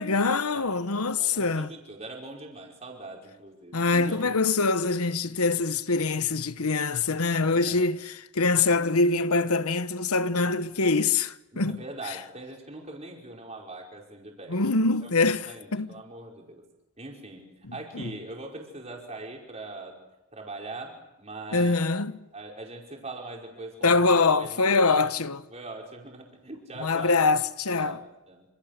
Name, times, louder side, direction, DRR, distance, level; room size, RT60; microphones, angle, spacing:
voice 1, 0.0-1.7 3.7-12.2 14.5-15.9 17.6-18.1 21.5-22.3 23.8-25.4 26.8-28.0, left 3 dB, 85° left, 1.2 m, -24 dB
voice 2, 1.2-4.4 7.2-7.9 8.4-8.5 11.5-14.6 15.0-15.1 15.4-16.6 17.0-20.0 20.3-21.9 22.3-24.0 24.4-24.9 25.5-27.1 27.7-28.4, right 2 dB, 30° right, 5.2 m, -42 dB
27.5 x 27.5 x 6.7 m
head